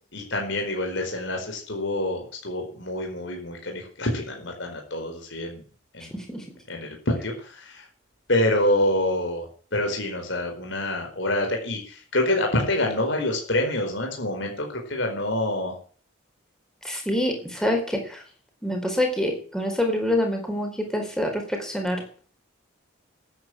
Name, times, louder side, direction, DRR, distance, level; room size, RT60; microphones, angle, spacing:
voice 1, 0.1-5.6 5.9-6.1 6.7-7.8 8.3-15.7, left 1 dB, 60° left, 2 dB, 4.6 m, -26 dB
voice 2, 6.1-6.4 16.8-18.2 18.6-22.0, left 1 dB, 5° left, 3 dB, 4.5 m, -26 dB
13.5 x 9.7 x 9.2 m, 0.43 s
head